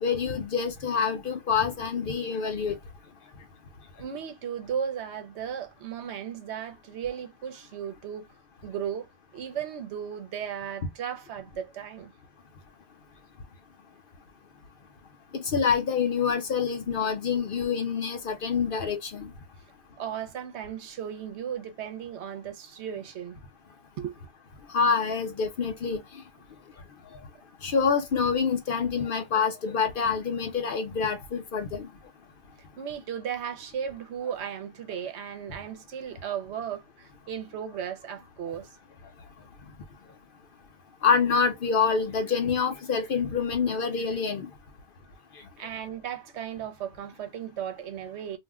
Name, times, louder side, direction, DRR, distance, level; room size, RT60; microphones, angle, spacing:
voice 1, 0.0-2.8 15.3-19.3 24.7-26.2 27.6-31.9 41.0-44.5 45.3-45.5, left 6 dB, 60° left, 0.7 m, -26 dB
voice 2, 4.0-8.3 8.6-12.1 20.0-23.4 24.0-24.1 32.6-38.7 45.6-48.4, right 8 dB, 75° right, 0.9 m, -36 dB
2.4 x 2.1 x 3.4 m
omnidirectional pair, 1.2 m